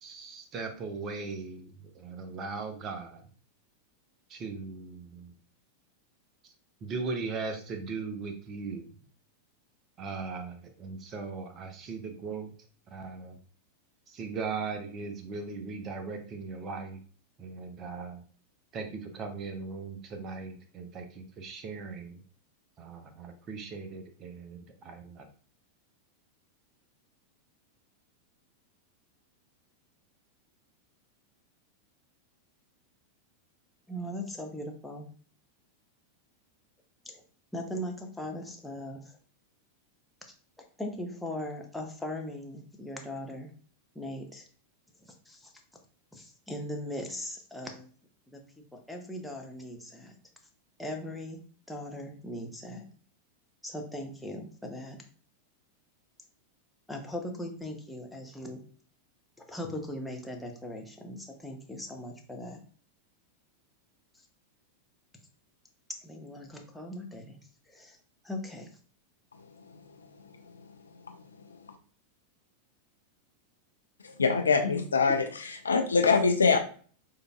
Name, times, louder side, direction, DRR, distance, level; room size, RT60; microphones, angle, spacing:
voice 1, 0.0-3.2 4.3-5.3 6.4-6.5 6.8-8.9 10.0-12.5 12.9-13.4 14.1-17.0 17.4-18.2 18.7-22.2 22.8-25.3, right 4 dB, 30° right, 6 dB, 0.7 m, -38 dB
voice 2, 33.9-35.0 37.0-37.2 37.5-39.2 40.6-43.5 43.9-44.4 45.0-45.5 46.1-47.9 48.3-48.4 48.7-50.1 50.8-51.4 51.7-52.8 53.6-55.0 56.9-58.6 59.5-62.6 66.0-67.4 67.7-68.0 68.2-68.7 74.6-74.7, left 1 dB, 5° left, 1 dB, 0.8 m, -39 dB
voice 3, 74.2-75.2 75.6-76.6, left 4 dB, 75° left, 6 dB, 0.4 m, -23 dB
6.5 x 2.6 x 2.3 m, 0.43 s
figure-of-eight pair, 90°, 0 cm